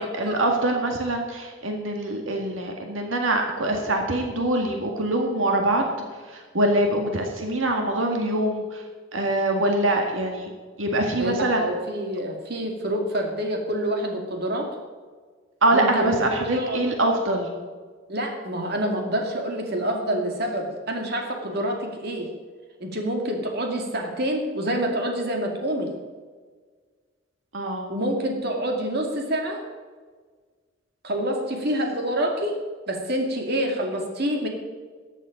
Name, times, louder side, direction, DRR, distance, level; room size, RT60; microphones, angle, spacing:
voice 1, 0.0-5.9 6.3-8.8 9.1-10.5 10.8-11.6 15.6-17.5 27.5-27.9, right 1 dB, 85° right, 2 dB, 1.9 m, -24 dB
voice 2, 11.2-14.7 15.7-16.8 18.1-22.3 22.8-25.9 27.9-29.6 31.0-32.6 32.9-34.5, equal, 55° right, 2 dB, 2.2 m, -27 dB
14.5 x 10.0 x 5.1 m, 1.5 s
head